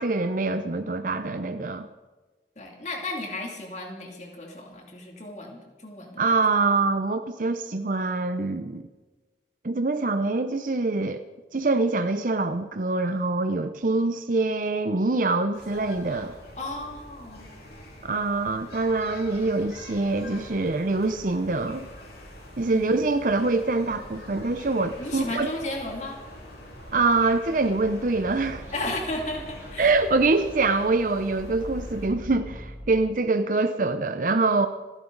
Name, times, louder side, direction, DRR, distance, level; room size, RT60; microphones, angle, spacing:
voice 1, 0.0-1.9 6.2-8.8 9.6-11.2 11.5-16.3 18.0-21.9 22.6-25.5 26.9-28.6 29.8-34.7, right 3 dB, 45° right, 9 dB, 0.6 m, -24 dB
voice 2, 2.6-6.4 16.6-17.5 22.7-23.1 25.0-26.2 28.7-29.9, left 2 dB, 40° left, 1 dB, 2.7 m, -34 dB
sound 1, 15.5-32.1, left 1 dB, 60° left, 5.9 m, -44 dB
sound 2, 27.8-32.9, equal, 15° right, 5.1 m, -43 dB
27.5 x 11.0 x 4.0 m, 1.3 s
head